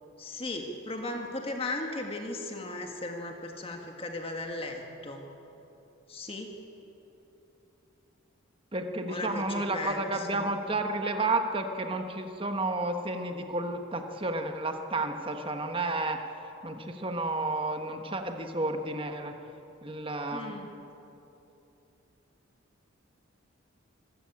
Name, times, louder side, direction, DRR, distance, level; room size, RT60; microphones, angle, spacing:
voice 1, 0.2-5.2 6.1-6.5 9.1-10.5 20.3-20.7, left 2 dB, 25° left, 3 dB, 1.9 m, -37 dB
voice 2, 8.7-16.2 16.6-19.3 19.8-20.5, right 2 dB, 25° right, 5 dB, 1.2 m, -31 dB
25.5 x 15.0 x 8.7 m, 2.9 s
head